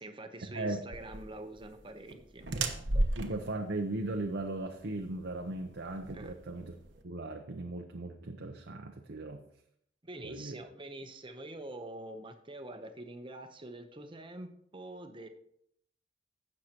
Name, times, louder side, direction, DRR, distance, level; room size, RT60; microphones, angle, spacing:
voice 1, 0.0-2.6 2.9-3.1 6.1-6.3 10.0-15.3, right 1 dB, 25° right, 7 dB, 0.8 m, -45 dB
sound 1, 0.9-7.0, right 2 dB, 85° right, 1.1 m, -36 dB
voice 2, 3.2-6.7 7.0-9.5 10.2-10.6, right 2 dB, 65° right, 3 dB, 0.7 m, -37 dB
16.0 x 6.5 x 2.9 m, 0.72 s
head